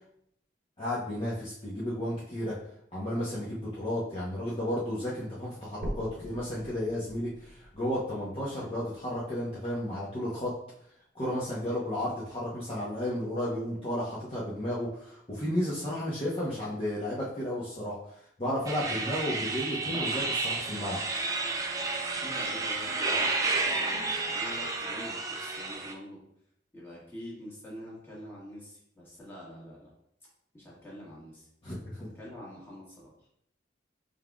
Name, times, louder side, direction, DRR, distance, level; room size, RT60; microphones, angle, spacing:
voice 1, 0.8-2.5 2.9-10.5 11.1-18.0 18.4-21.0 31.6-32.1, left 1 dB, 30° left, -8 dB, 0.8 m, -33 dB
sound 1, 5.8-9.8 10.4-10.5 11.0-11.1 11.5-11.6 12.4-12.5, equal, 60° right, 0.8 m, -44 dB
sound 2, 18.7-25.9, right 3 dB, 20° right, 0.4 m, -31 dB
voice 2, 22.2-26.2 26.7-29.9 30.5-31.5 32.1-33.3, equal, 15° left, -6 dB, 1.5 m, -46 dB
5.5 x 3.5 x 2.3 m, 0.72 s
head